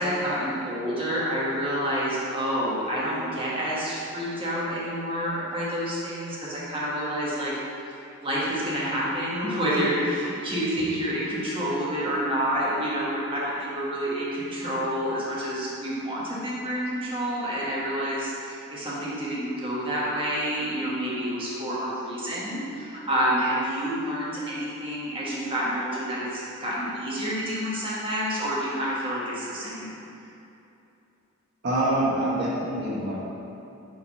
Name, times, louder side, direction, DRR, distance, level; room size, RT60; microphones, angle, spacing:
voice 1, 0.0-7.5 8.2-30.0, equal, 25° right, -7 dB, 1.4 m, -28 dB
voice 2, 31.6-33.2, right 1 dB, 55° right, -7 dB, 1.1 m, -25 dB
5.7 x 3.4 x 5.4 m, 2.8 s
head